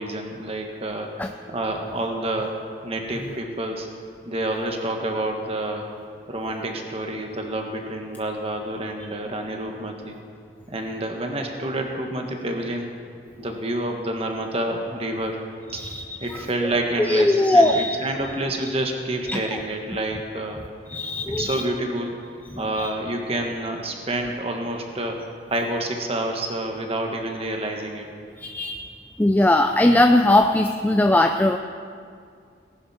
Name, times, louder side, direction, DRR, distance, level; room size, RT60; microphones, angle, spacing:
voice 1, 0.0-1.2 1.5-3.9 4.2-5.9 6.3-10.1 10.7-12.9 13.4-15.4 15.7-15.8 16.2-20.6 21.4-22.2 22.5-25.2 25.5-28.1, right 1 dB, 35° right, 2 dB, 1.5 m, -28 dB
voice 2, 15.7-16.4 17.0-18.0 19.3-19.4 20.9-21.6 22.5-22.9 28.4-28.8 29.2-31.6, left 1 dB, 10° left, 5 dB, 0.4 m, -19 dB
18.5 x 11.0 x 4.3 m, 2.2 s
head